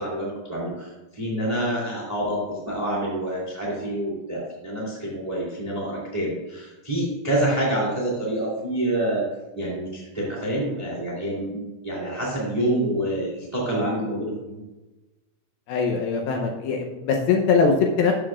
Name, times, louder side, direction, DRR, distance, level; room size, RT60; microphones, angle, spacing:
voice 1, 0.0-9.3 9.5-14.6, right 1 dB, 15° right, -4 dB, 1.3 m, -27 dB
voice 2, 15.7-18.1, left 5 dB, 75° left, 2 dB, 2.5 m, -21 dB
13.5 x 6.8 x 2.4 m, 1.1 s
omnidirectional pair, 4.7 m